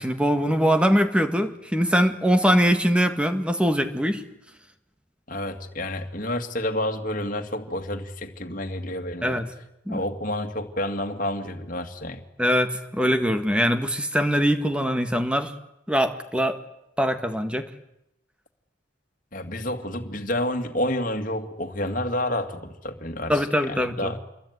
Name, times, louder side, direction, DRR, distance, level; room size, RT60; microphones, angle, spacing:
voice 1, 0.0-4.2 9.2-9.5 9.9-10.0 12.4-15.5 15.9-16.6 17.0-17.7 23.3-24.1, equal, 5° right, 8 dB, 1.8 m, -22 dB
voice 2, 5.3-9.4 9.9-12.2 19.3-24.2, left 1 dB, 40° left, 5 dB, 2.4 m, -29 dB
28.0 x 22.0 x 9.6 m, 0.84 s
head